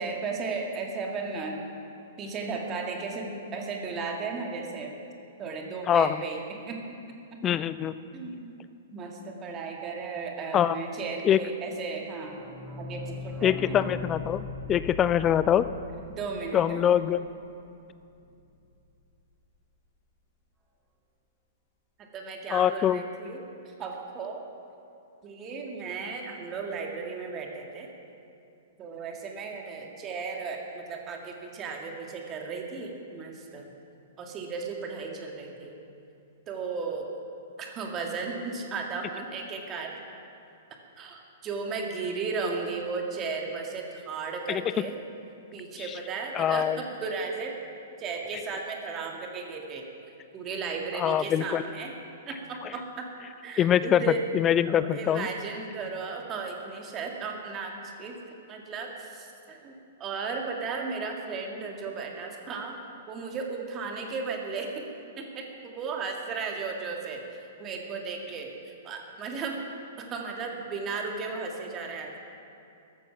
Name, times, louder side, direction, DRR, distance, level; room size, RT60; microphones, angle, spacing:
voice 1, 0.0-1.6 2.2-5.0 5.4-6.8 7.3-7.4 8.1-8.5 8.9-12.4 12.8-13.8 16.2-16.8 22.1-24.4 25.2-27.9 28.8-33.7 34.2-35.7 36.5-37.1 37.6-39.9 41.0-45.0 45.5-47.5 48.0-49.8 50.3-51.9 52.3-53.1 53.4-54.2 54.7-58.2 58.5-62.8 63.1-64.8 65.2-69.6 70.0-72.2, right 4 dB, 25° right, 1 dB, 2.0 m, -35 dB
voice 2, 5.9-6.2 7.4-8.0 10.5-10.8 11.2-11.4 13.4-14.4 14.7-15.7 16.5-17.2 22.5-23.0 44.5-44.6 46.3-46.8 51.0-51.6 53.6-54.0 54.3-55.3, left 10 dB, 20° left, 15 dB, 0.5 m, -23 dB
sound 1, 12.0-17.5 17.9-18.0 18.1-18.2 18.5-18.6, left 3 dB, 10° right, 1.7 m, -40 dB
14.0 x 13.5 x 5.8 m, 2.7 s
figure-of-eight pair, 110°, 0 cm